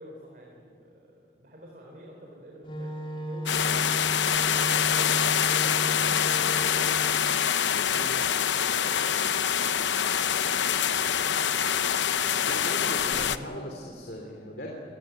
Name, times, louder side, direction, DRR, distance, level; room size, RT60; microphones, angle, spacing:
voice 1, 0.0-4.3 4.7-7.2 7.8-11.5 12.1-12.8, equal, 50° right, -1 dB, 3.9 m, -49 dB
Wind instrument woodwind instrument, 2.6-7.3, equal, 30° left, 4.4 m, -35 dB
sound 1, 3.5-13.4, left 8 dB, 90° left, 0.8 m, -25 dB
voice 2, 12.5-14.7, equal, 55° left, 0 dB, 3.4 m, -38 dB
24.5 x 19.5 x 9.2 m, 2.2 s
head